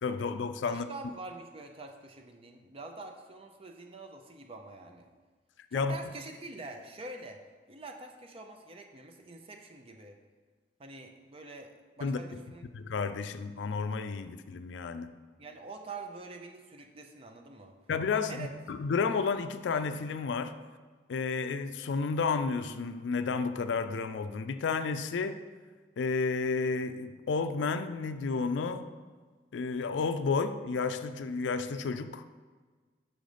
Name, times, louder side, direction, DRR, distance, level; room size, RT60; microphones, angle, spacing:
voice 1, 0.0-0.9 5.7-6.0 12.0-12.2 12.7-15.1 17.9-20.6 21.1-25.4 26.0-28.9 29.5-32.2, left 4 dB, 75° left, 10 dB, 0.4 m, -31 dB
voice 2, 0.6-5.1 5.7-7.4 7.7-10.2 10.8-12.6 15.4-17.7 18.3-18.5, right 3 dB, 30° right, 4 dB, 0.5 m, -45 dB
6.2 x 3.9 x 5.0 m, 1.4 s
head